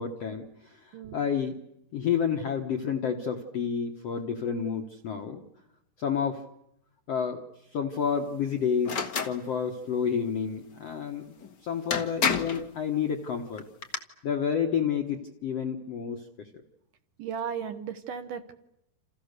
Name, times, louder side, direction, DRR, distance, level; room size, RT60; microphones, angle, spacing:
voice 1, 0.0-1.6 1.9-5.4 6.0-6.5 7.1-7.4 7.7-11.4 11.6-13.7 14.2-16.5, left 7 dB, 65° left, 4 dB, 1.6 m, -30 dB
sound 1, 8.8-9.4 11.4-11.5 11.9-12.6 13.6-14.0, left 6 dB, 80° left, 0.9 m, -28 dB
voice 2, 17.2-18.5, right 7 dB, 65° right, 8 dB, 2.3 m, -35 dB
28.5 x 28.5 x 6.7 m, 0.80 s
omnidirectional pair, 4.7 m